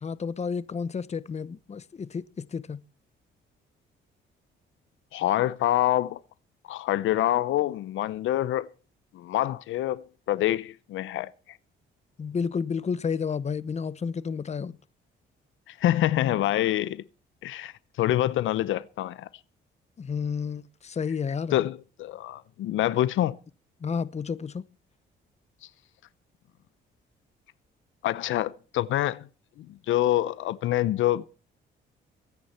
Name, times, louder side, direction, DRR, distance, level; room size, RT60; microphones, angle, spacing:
voice 1, 0.0-2.8 12.2-14.8 20.0-21.6 23.8-24.6, left 6 dB, 35° left, 0.9 m, -31 dB
voice 2, 5.1-6.2 6.7-8.7 9.1-11.3 15.7-17.0 17.4-19.3 21.5-23.3 28.0-29.3 29.6-31.2, left 13 dB, 80° left, 0.8 m, -26 dB
22.5 x 9.9 x 4.4 m
cardioid pair, 90°, 20 cm